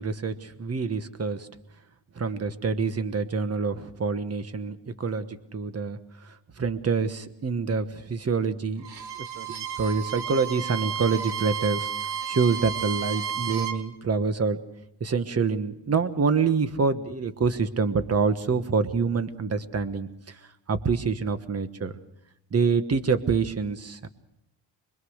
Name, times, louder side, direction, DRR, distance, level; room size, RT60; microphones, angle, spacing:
voice 1, 0.0-1.5 2.1-6.0 6.2-8.9 9.4-11.9 12.3-14.6 15.0-20.4 20.7-21.9 22.5-24.1, right 5 dB, 30° right, 11 dB, 1.3 m, -26 dB
Bowed string instrument, 8.8-13.8, right 8 dB, 60° right, 1.7 m, -32 dB
25.0 x 22.0 x 6.4 m, 0.83 s
wide cardioid pair, 155°, 45 cm